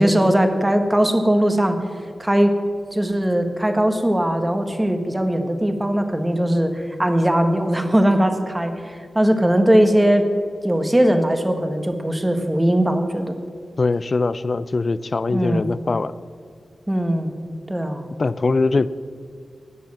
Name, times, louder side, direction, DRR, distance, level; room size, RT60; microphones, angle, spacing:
voice 1, 0.0-1.8 2.2-2.6 2.9-10.3 10.6-13.4 15.3-15.7 16.9-17.3 17.7-18.1, right 1 dB, 10° right, 7 dB, 1.4 m, -19 dB
voice 2, 13.8-16.2 18.2-18.9, left 3 dB, 40° left, 16 dB, 0.5 m, -21 dB
16.5 x 10.0 x 7.6 m, 2.1 s
wide cardioid pair, 115°, 0 cm